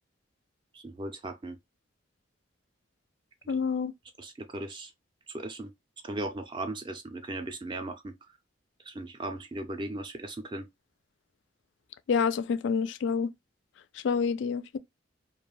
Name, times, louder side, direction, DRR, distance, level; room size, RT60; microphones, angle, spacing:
voice 1, 0.7-1.6 3.4-3.6 4.2-4.9 5.3-5.7 6.0-8.1 8.8-10.7, right 2 dB, 25° right, 0.4 m, -37 dB
voice 2, 3.5-3.9 12.1-13.3 14.0-14.8, left 6 dB, 65° left, 0.3 m, -27 dB
2.3 x 2.2 x 3.0 m
head